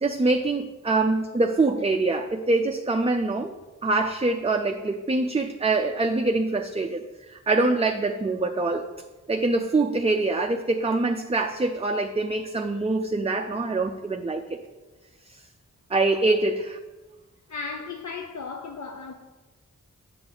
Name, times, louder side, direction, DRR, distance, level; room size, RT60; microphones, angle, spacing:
voice 1, 0.0-3.5 3.8-8.8 9.3-14.6 15.3-15.4 15.9-16.8, right 3 dB, 20° right, 0.5 m, -24 dB
voice 2, 17.5-19.1, left 4 dB, 60° left, 0.6 m, -35 dB
7.9 x 6.7 x 3.9 m
wide cardioid pair, 45°, 32 cm